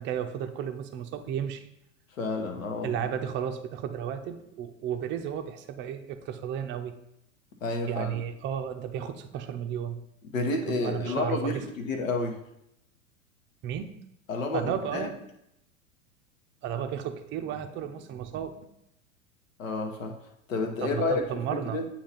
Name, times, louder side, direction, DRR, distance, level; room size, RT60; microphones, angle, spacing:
voice 1, 0.0-1.7 2.8-6.9 7.9-10.0 10.7-11.6 13.6-13.9 14.5-15.2 16.6-18.6 20.8-21.8, right 9 dB, 30° right, 7 dB, 0.5 m, -33 dB
voice 2, 2.2-3.0 7.6-8.2 10.3-12.4 14.3-15.1 19.6-20.1 20.5-21.2 21.5-21.9, left 3 dB, 75° left, 3 dB, 1.1 m, -30 dB
8.6 x 2.9 x 4.1 m, 0.82 s
hypercardioid pair, 90°, 40 cm